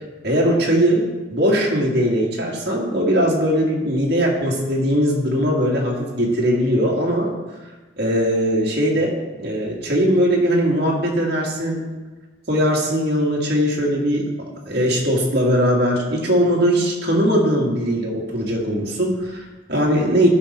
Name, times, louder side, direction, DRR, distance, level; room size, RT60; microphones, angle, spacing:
voice 1, 0.2-7.3 8.0-11.9 12.5-14.2 14.7-20.3, equal, 60° right, -2 dB, 1.8 m, -20 dB
11.0 x 5.1 x 4.2 m, 1.2 s
head